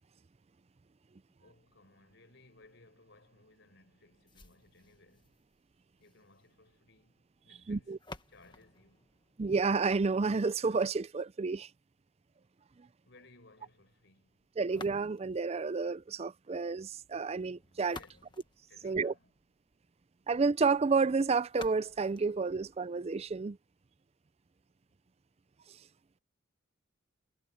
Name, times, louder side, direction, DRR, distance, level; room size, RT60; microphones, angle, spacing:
voice 1, 1.3-5.4 6.0-8.0 8.3-9.1 13.0-14.5 18.0-19.3, left 2 dB, 60° left, 5.5 m, -62 dB
sound 1, 4.3-10.2 14.6-15.5 17.5-19.5 21.5-23.5, left 3 dB, 20° left, 1.4 m, -53 dB
voice 2, 7.7-8.0 9.4-11.7 14.6-18.0 18.8-19.1 20.3-23.6, right 4 dB, 30° right, 0.4 m, -30 dB
head